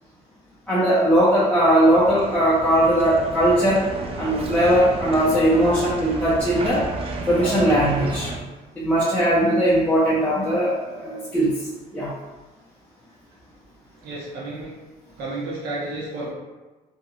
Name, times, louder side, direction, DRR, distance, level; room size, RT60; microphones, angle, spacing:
voice 1, 0.7-3.8 4.2-6.8 7.3-8.3 8.8-11.7 11.9-12.1, right 1 dB, 10° left, -10 dB, 0.6 m, -19 dB
sound 1, 1.9-8.4, right 3 dB, 35° right, 0.4 m, -31 dB
voice 2, 14.0-14.7 15.2-16.3, right 2 dB, 75° right, -6 dB, 0.8 m, -31 dB
2.7 x 2.6 x 2.4 m, 1.2 s
cardioid pair, 110°, 17 cm